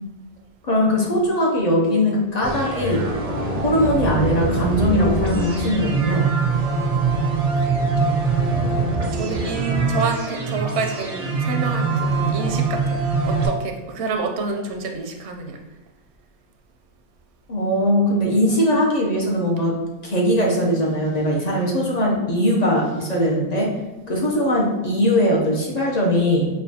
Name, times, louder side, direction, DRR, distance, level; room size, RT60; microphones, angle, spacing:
voice 1, 0.6-3.0 3.6-6.3 17.5-19.8 20.0-23.7 24.1-26.5, equal, 45° left, -2 dB, 0.6 m, -20 dB
sound 1, 2.4-13.5, right 4 dB, 45° right, 0.5 m, -23 dB
voice 2, 7.6-8.2 9.1-15.6, right 4 dB, 85° right, 3 dB, 0.8 m, -28 dB
5.1 x 2.3 x 2.7 m, 1.1 s
omnidirectional pair, 1.1 m